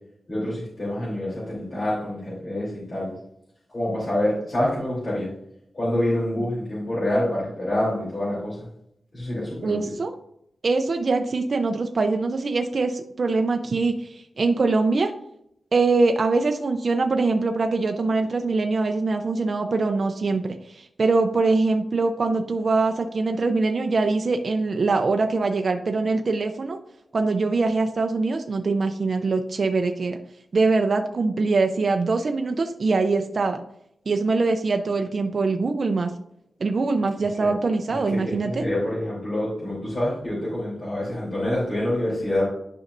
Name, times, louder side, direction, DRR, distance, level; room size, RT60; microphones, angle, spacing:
voice 1, 0.3-3.1 3.7-5.3 5.7-8.6 9.1-9.8 37.4-37.5 38.1-42.5, left 1 dB, 35° left, -9 dB, 3.2 m, -26 dB
voice 2, 9.6-10.1 10.6-15.1 15.7-26.8 27.1-30.2 30.5-33.6 34.1-36.1 36.6-38.6, right 3 dB, 45° right, 5 dB, 0.5 m, -23 dB
11.0 x 5.3 x 2.6 m, 0.75 s
wide cardioid pair, 155°, 0 cm